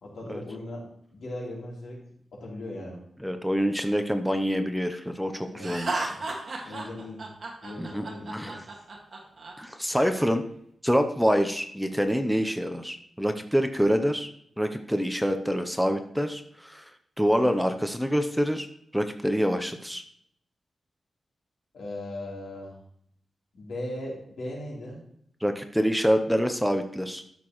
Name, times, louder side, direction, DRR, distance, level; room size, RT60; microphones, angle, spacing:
voice 1, 0.0-0.8 1.1-2.0 2.3-3.0 5.5-5.7 6.0-6.2 6.6-7.2 7.6-8.8 21.7-22.8 23.5-25.0, left 1 dB, 90° left, -4 dB, 3.5 m, -38 dB
voice 2, 3.2-6.1 6.5-6.6 7.8-8.1 8.3-8.6 9.6-10.4 10.8-14.3 14.6-16.8 17.2-18.7 18.9-20.0 25.4-27.2, equal, ahead, 7 dB, 0.7 m, -26 dB
Laughter, 5.6-9.5, right 3 dB, 50° right, 1.9 m, -33 dB
12.5 x 6.8 x 3.1 m, 0.68 s
wide cardioid pair, 125°, 0 cm